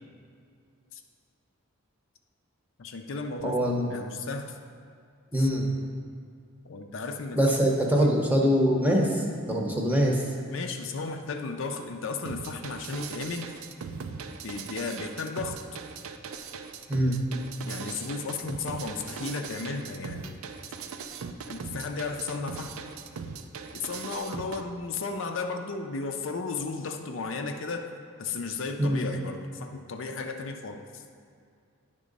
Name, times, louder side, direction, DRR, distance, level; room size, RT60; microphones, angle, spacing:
voice 1, 2.8-4.6 5.4-5.5 6.6-7.4 8.0-8.2 10.5-13.5 14.4-15.8 17.6-20.4 21.5-22.7 23.7-27.9 28.2-31.0, left 4 dB, 60° left, 5 dB, 0.5 m, -34 dB
voice 2, 3.4-3.9 5.3-5.6 7.4-10.2 16.9-17.1 28.8-29.0, equal, 10° right, -1 dB, 0.8 m, -23 dB
sound 1, 12.2-24.6, right 5 dB, 75° right, 0.4 m, -39 dB
10.0 x 3.7 x 5.2 m, 2.3 s
head